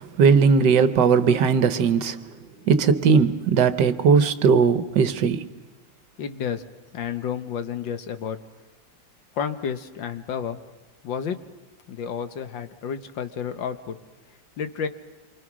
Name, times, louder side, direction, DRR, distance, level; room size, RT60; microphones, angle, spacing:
voice 1, 0.0-2.2 2.6-5.5, right 6 dB, 65° right, 1.5 m, -18 dB
voice 2, 6.2-6.6 6.9-8.4 9.4-10.6 11.0-11.4 11.9-14.0 14.6-14.9, left 7 dB, 70° left, 1.9 m, -30 dB
27.5 x 24.5 x 6.2 m
omnidirectional pair, 2.1 m